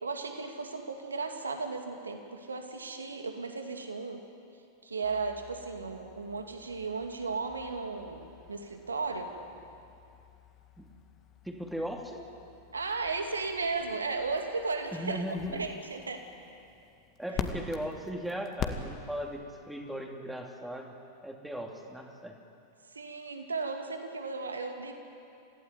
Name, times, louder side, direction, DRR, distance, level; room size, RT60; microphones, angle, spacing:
voice 1, 0.0-4.2 4.8-9.3 12.7-15.2 15.5-16.2 22.9-24.9, right 4 dB, 75° right, 5 dB, 2.4 m, -35 dB
sound 1, 5.0-19.4, left 7 dB, 30° left, 1.9 m, -45 dB
voice 2, 11.4-12.2 14.9-15.7 17.2-20.9 21.2-22.4, equal, 5° right, 2 dB, 2.8 m, -37 dB
27.0 x 16.0 x 9.7 m, 2.7 s
figure-of-eight pair, 90°, 0 cm